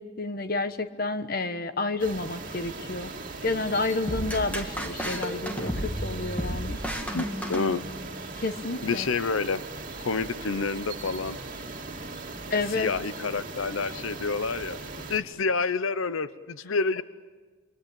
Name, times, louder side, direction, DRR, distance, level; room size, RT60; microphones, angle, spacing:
voice 1, 0.0-3.1 3.4-6.8 8.4-9.1 12.5-12.9, left 3 dB, 45° left, 10 dB, 1.3 m, -30 dB
sound 1, 2.0-15.2, right 3 dB, 40° right, 3.2 m, -39 dB
sound 2, 4.1-8.2, equal, 5° left, 2.2 m, -33 dB
voice 2, 7.1-7.8 8.8-9.6 10.0-11.4 12.7-14.8 15.1-17.0, left 4 dB, 90° left, 14 dB, 0.8 m, -28 dB
28.5 x 24.0 x 8.8 m, 1.4 s
head